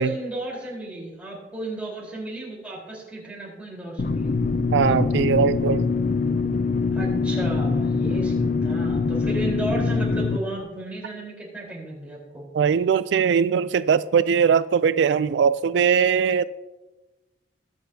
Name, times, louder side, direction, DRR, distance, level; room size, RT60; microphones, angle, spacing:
voice 1, 0.0-4.3 6.9-12.4, right 1 dB, 5° right, 4.0 m, -33 dB
sound 1, 4.0-10.4, left 4 dB, 45° left, 0.4 m, -23 dB
voice 2, 4.7-5.8 12.5-16.4, right 6 dB, 80° right, 0.3 m, -20 dB
22.0 x 7.9 x 2.8 m
head